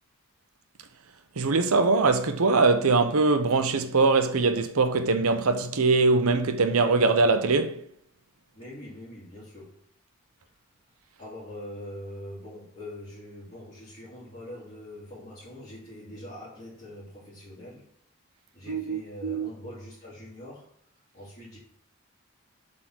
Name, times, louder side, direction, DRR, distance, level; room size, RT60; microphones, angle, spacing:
voice 1, 1.4-7.8 18.7-19.5, right 3 dB, 80° right, 0.8 m, -22 dB
voice 2, 8.5-9.7 11.2-17.8 18.5-20.7 21.1-21.6, left 1 dB, 30° left, 2.8 m, -43 dB
7.7 x 3.8 x 6.1 m
head